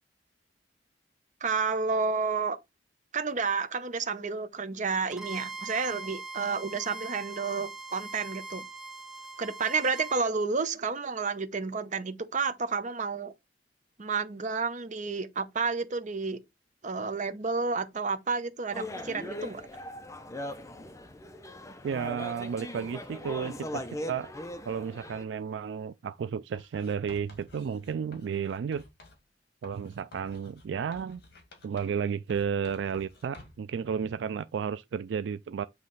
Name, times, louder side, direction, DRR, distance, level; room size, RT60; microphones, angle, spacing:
voice 1, 1.4-2.6 3.1-8.6 9.4-13.3 14.0-16.4 16.8-19.6, right 4 dB, 45° right, 0.8 m, -30 dB
Bowed string instrument, 5.1-10.3, right 4 dB, 5° right, 1.0 m, -41 dB
sound 1, 18.7-25.2, left 1 dB, 15° left, 0.7 m, -40 dB
voice 2, 21.8-24.3 24.7-28.8 29.6-31.2 31.6-35.7, right 7 dB, 75° right, 0.3 m, -33 dB
Writing, 26.5-29.2 29.6-32.0 32.3-33.7, left 2 dB, 60° left, 2.1 m, -53 dB
7.5 x 3.2 x 3.9 m
head